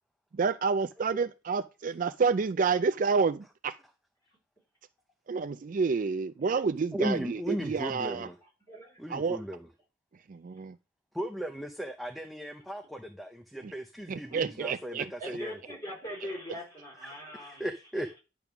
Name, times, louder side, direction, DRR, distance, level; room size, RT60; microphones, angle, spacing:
voice 1, 0.3-3.8 5.3-8.3 9.1-9.4 10.3-10.7 13.6-13.7 14.1-15.1, right 5 dB, 45° right, 0.4 m, -29 dB
voice 2, 6.9-8.4 9.0-9.7 11.1-15.6 17.0-17.1 17.4-18.2, equal, ahead, 0.6 m, -36 dB
voice 3, 8.7-9.0 14.3-14.4 15.0-17.7, equal, 20° left, 4.1 m, -41 dB
10.5 x 3.6 x 5.9 m
head